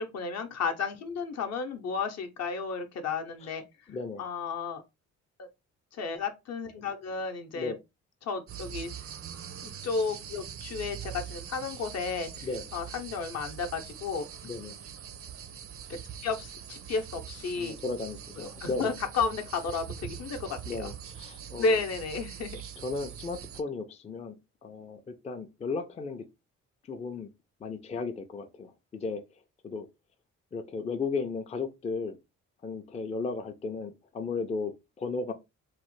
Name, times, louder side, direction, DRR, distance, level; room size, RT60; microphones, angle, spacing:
voice 1, 0.0-3.6 4.2-4.8 5.4-5.5 5.9-7.7 8.2-8.9 9.6-14.3 15.9-17.8 18.4-20.9 21.6-22.6, left 4 dB, 60° left, 0.7 m, -33 dB
voice 2, 3.9-4.2 7.5-7.8 12.4-12.7 14.4-14.8 17.6-19.0 20.6-21.8 22.8-24.4 24.6-26.3 26.8-27.3 27.6-29.9 30.5-32.2 32.6-35.3, left 4 dB, 20° left, 0.4 m, -35 dB
sound 1, 8.5-23.6, right 9 dB, 50° right, 0.5 m, -43 dB
3.1 x 2.1 x 3.0 m
cardioid pair, 90°, 30 cm